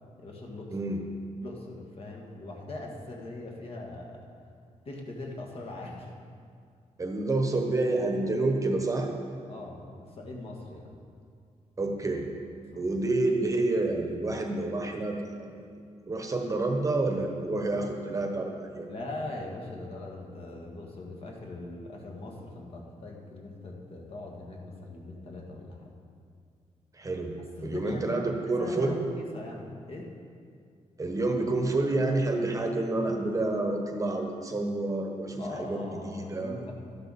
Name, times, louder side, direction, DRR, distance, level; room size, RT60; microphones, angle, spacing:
voice 1, 0.2-0.8 1.4-4.2 4.9-6.1 9.5-10.9 12.7-12.9 18.9-25.9 27.6-30.1 35.4-36.7, left 2 dB, 50° left, -1 dB, 1.8 m, -41 dB
voice 2, 0.7-1.0 7.0-9.1 11.8-12.3 12.8-15.6 16.1-18.9 26.9-29.0 31.0-36.7, right 2 dB, 25° right, 3 dB, 1.1 m, -29 dB
12.0 x 11.5 x 4.2 m, 2.2 s
wide cardioid pair, 135°, 13 cm